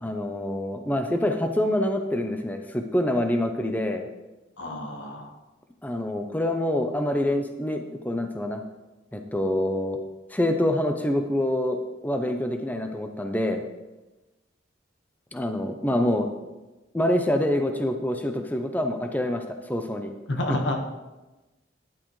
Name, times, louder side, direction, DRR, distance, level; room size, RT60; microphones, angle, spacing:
voice 1, 0.0-4.1 5.8-8.6 9.1-10.0 10.3-11.8 12.0-13.6 15.3-16.3 16.9-20.1 20.5-20.6, left 1 dB, 10° left, 5 dB, 0.6 m, -26 dB
voice 2, 4.6-5.3 20.3-20.8, left 1 dB, 75° left, 3 dB, 1.4 m, -29 dB
12.5 x 10.0 x 3.2 m, 1.1 s
head